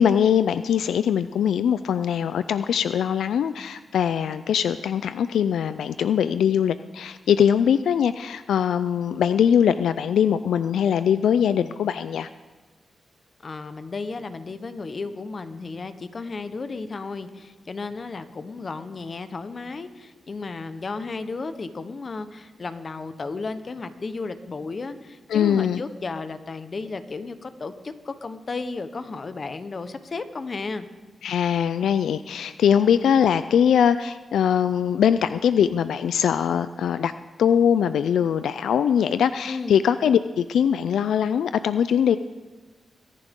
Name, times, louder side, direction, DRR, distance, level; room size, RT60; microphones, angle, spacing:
voice 1, 0.0-12.3 25.3-25.8 31.2-37.1 37.4-42.2, left 8 dB, 90° left, 13 dB, 0.3 m, -21 dB
voice 2, 13.4-30.9 39.4-39.8, left 3 dB, 45° left, 10 dB, 1.0 m, -34 dB
23.0 x 11.0 x 3.7 m, 1.3 s
cardioid pair, 75°, 0 cm